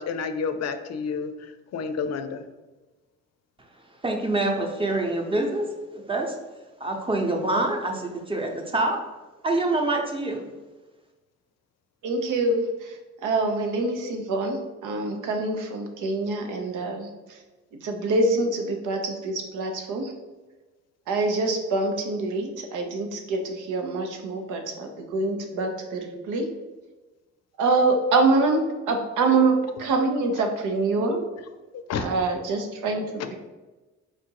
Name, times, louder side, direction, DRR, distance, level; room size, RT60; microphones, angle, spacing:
voice 1, 0.0-2.4 30.4-30.5 31.7-32.1 33.2-33.3, left 5 dB, 60° left, 9 dB, 0.5 m, -30 dB
voice 2, 4.0-5.6 5.9-6.3 6.8-9.0 9.4-10.5, right 2 dB, 15° right, 2 dB, 0.8 m, -25 dB
voice 3, 12.0-17.4 17.8-20.1 21.1-26.4 27.6-28.6 28.9-31.2 32.0-33.0, right 3 dB, 85° right, 4 dB, 0.8 m, -25 dB
4.2 x 2.5 x 4.6 m, 1.2 s
cardioid pair, 90°, 30 cm